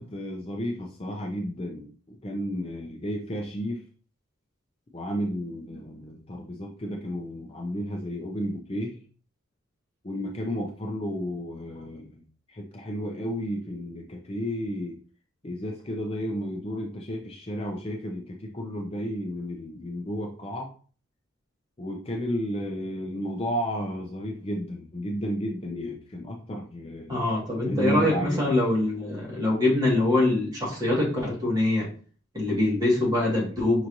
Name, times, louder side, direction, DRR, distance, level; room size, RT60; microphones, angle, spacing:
voice 1, 0.0-3.8 4.9-9.0 10.0-12.2 12.5-15.0 15.4-20.7 21.8-27.3 27.7-28.5, equal, 30° left, 1 dB, 0.5 m, -32 dB
voice 2, 27.1-31.9 32.3-33.9, left 2 dB, 20° right, -4 dB, 1.7 m, -24 dB
5.7 x 3.0 x 2.6 m, 0.40 s
head